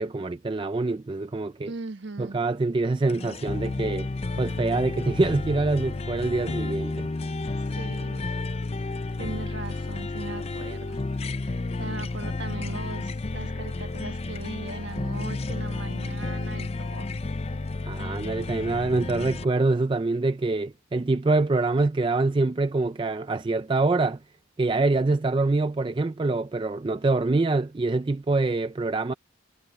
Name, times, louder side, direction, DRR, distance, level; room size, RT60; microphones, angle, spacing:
voice 1, 0.0-1.7 2.2-4.1 4.4-7.1 17.8-24.2 24.6-29.1, right 3 dB, 25° right, 0.3 m, -25 dB
voice 2, 1.7-2.4 7.8-8.4 9.2-11.0 11.5-17.1, right 3 dB, 55° right, 1.3 m, -39 dB
sound 1, 3.1-19.4, left 3 dB, 30° left, 0.5 m, -31 dB
head